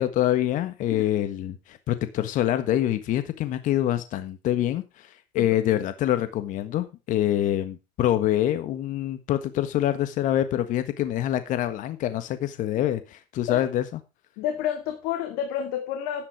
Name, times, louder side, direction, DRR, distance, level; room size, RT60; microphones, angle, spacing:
voice 1, 0.0-13.8, left 12 dB, 55° left, 11 dB, 1.5 m, -25 dB
voice 2, 14.4-16.3, left 10 dB, 70° left, 5 dB, 2.7 m, -29 dB
12.0 x 9.7 x 4.7 m, 0.27 s
supercardioid pair, 110°, 16 cm